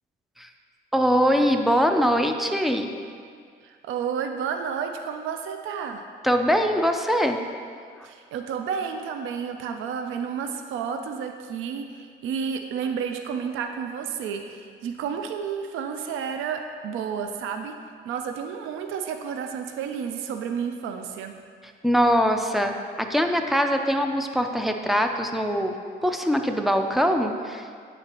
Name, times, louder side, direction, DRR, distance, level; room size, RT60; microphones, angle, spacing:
voice 1, 0.9-2.9 6.2-7.4 21.8-25.7 26.0-27.7, equal, ahead, 4 dB, 0.4 m, -22 dB
voice 2, 3.6-6.1 8.0-17.8 18.0-21.4, right 7 dB, 85° right, 6 dB, 0.4 m, -31 dB
8.9 x 3.9 x 2.9 m, 2.1 s
cardioid pair, 90°, 20 cm